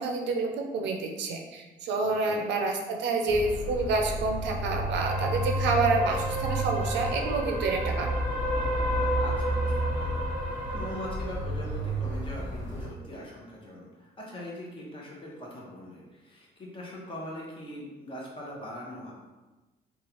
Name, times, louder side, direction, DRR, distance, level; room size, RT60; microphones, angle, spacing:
voice 1, 0.0-8.1, right 3 dB, 80° right, 3 dB, 0.5 m, -28 dB
voice 2, 2.0-2.4 9.2-10.3 10.7-19.1, left 1 dB, 30° left, -4 dB, 0.8 m, -41 dB
sound 1, 3.3-12.9, right 1 dB, 85° left, 0.9 m, -30 dB
3.0 x 2.4 x 2.9 m, 1.2 s
cardioid pair, 135°, 18 cm